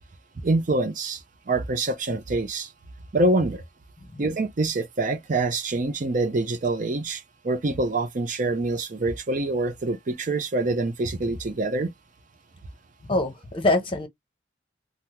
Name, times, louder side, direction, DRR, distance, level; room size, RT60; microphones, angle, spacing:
voice 1, 0.4-2.7 3.1-3.6 4.2-11.9, right 2 dB, 40° right, 0.5 m, -25 dB
voice 2, 13.0-14.1, left 2 dB, 25° left, 0.8 m, -24 dB
3.4 x 2.0 x 2.9 m
head